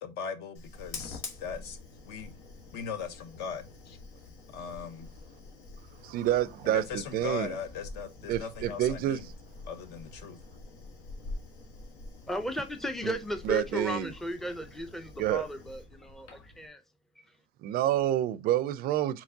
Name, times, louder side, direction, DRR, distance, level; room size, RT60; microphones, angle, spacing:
voice 1, 0.0-1.8 2.0-2.3 2.7-4.0 4.5-5.1 6.6-9.3 9.7-10.4, left 6 dB, 60° left, 1.0 m, -39 dB
Fire, 0.5-16.7, left 3 dB, 85° left, 1.4 m, -47 dB
voice 2, 6.0-7.5 8.3-9.2 13.0-13.1 13.4-14.1 15.2-15.4 17.6-19.2, right 12 dB, 50° right, 0.4 m, -28 dB
voice 3, 12.3-16.8 17.2-17.3, equal, ahead, 0.5 m, -35 dB
4.5 x 4.1 x 2.7 m
cardioid pair, 155°, 19 cm